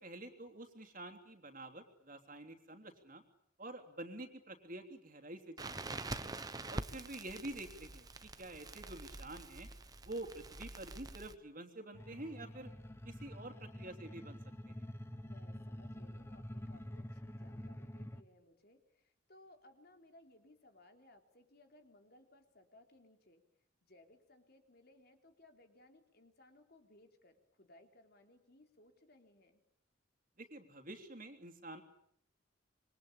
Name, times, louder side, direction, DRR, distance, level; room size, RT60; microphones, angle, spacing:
voice 1, 0.0-3.2 3.6-6.3 6.7-9.7 10.0-12.7 13.0-14.4 14.6-14.7 30.4-31.8, right 1 dB, 45° right, 5 dB, 3.3 m, -48 dB
Crackle, 5.6-11.4, right 2 dB, 20° right, 1.1 m, -46 dB
voice 2, 8.8-9.3 15.2-23.4 23.8-29.6, left 1 dB, 55° left, 5 dB, 3.6 m, -64 dB
sound 1, 11.9-18.2, equal, 15° left, 1.4 m, -47 dB
26.5 x 23.0 x 8.8 m, 0.69 s
head